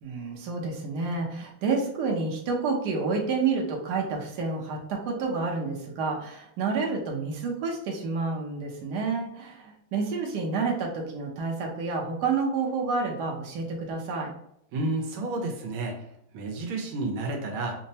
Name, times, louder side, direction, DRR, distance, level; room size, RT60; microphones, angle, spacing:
voice 1, 0.0-14.3, right 4 dB, 60° right, -1 dB, 1.2 m, -29 dB
voice 2, 14.7-15.9 16.3-17.8, right 2 dB, 85° right, 1 dB, 1.5 m, -30 dB
5.3 x 2.1 x 2.7 m, 0.74 s
omnidirectional pair, 2.2 m